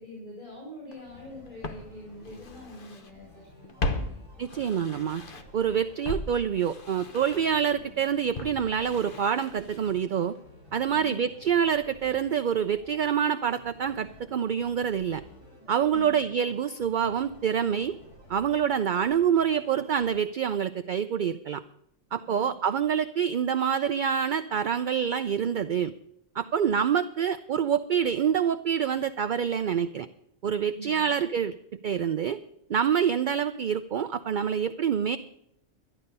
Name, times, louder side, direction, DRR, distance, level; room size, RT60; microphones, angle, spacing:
voice 1, 0.0-4.2 10.9-11.2 15.9-16.2 22.2-22.5 30.7-31.1, left 1 dB, 25° left, -4 dB, 5.0 m, -44 dB
Walk footsteps, 0.9-1.0 1.6-3.1 3.4-5.6 6.0-10.1 10.4-10.5, left 2 dB, 45° left, 1.2 m, -37 dB
sound 1, 1.0-20.1, left 1 dB, 60° left, 4.8 m, -53 dB
voice 2, 4.4-5.2 5.5-10.4 10.7-15.2 15.7-18.0 18.3-21.6 22.1-25.9 26.3-30.1 30.4-31.5 31.8-32.4 32.7-35.2, right 8 dB, 55° right, 10 dB, 0.5 m, -26 dB
12.0 x 12.0 x 5.4 m, 0.76 s
omnidirectional pair, 1.3 m